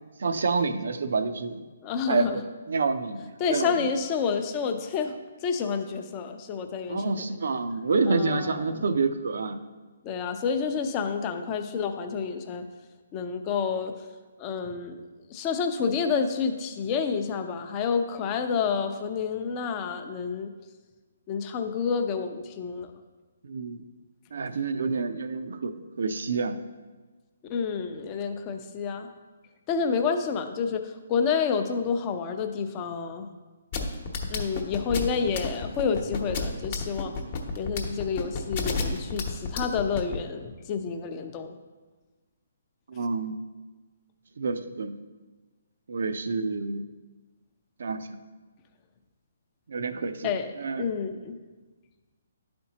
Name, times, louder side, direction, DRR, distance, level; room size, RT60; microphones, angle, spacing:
voice 1, 0.2-1.6 2.1-3.8 6.9-9.6 23.4-23.8 24.3-26.6 42.9-43.4 44.4-44.9 45.9-46.9 47.8-48.1 49.7-50.9, right 4 dB, 70° right, 10 dB, 0.5 m, -28 dB
voice 2, 1.8-2.4 3.4-5.2 5.4-7.2 8.0-8.8 10.0-12.6 13.1-13.9 14.4-15.0 15.3-20.5 21.3-22.9 27.5-29.1 29.7-33.3 34.3-37.1 37.6-41.6 50.2-50.5 50.8-51.4, left 6 dB, 25° left, 6 dB, 0.5 m, -29 dB
sound 1, 33.7-40.2, left 5 dB, 45° left, 1.0 m, -30 dB
11.0 x 4.3 x 2.9 m, 1.3 s
hypercardioid pair, 150°, 0 cm